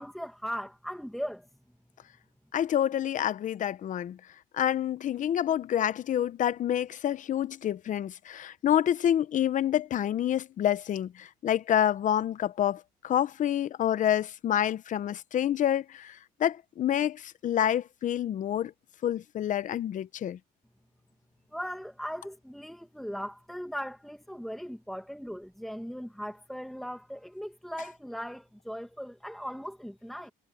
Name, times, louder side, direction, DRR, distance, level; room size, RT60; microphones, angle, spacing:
voice 1, 0.0-1.5 21.5-30.3, equal, ahead, 1.9 m, -38 dB
voice 2, 2.5-4.2 4.5-18.7 19.0-20.4, left 10 dB, 50° left, 0.8 m, -28 dB
cardioid pair, 110°, 17 cm